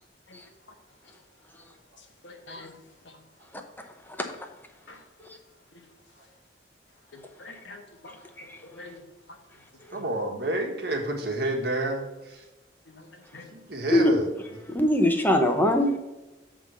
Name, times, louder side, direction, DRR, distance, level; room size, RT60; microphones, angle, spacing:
voice 1, 2.2-2.7 3.0-3.2 4.9-5.0 7.4-8.1 8.6-9.0 12.9-13.1 13.3-13.4, left 2 dB, 70° left, 3 dB, 1.3 m, -45 dB
voice 2, 9.9-12.4 13.5-14.3, right 2 dB, 55° right, 1 dB, 1.4 m, -29 dB
voice 3, 14.7-16.0, left 1 dB, 10° left, 5 dB, 0.7 m, -22 dB
8.0 x 3.7 x 6.0 m, 1.1 s
head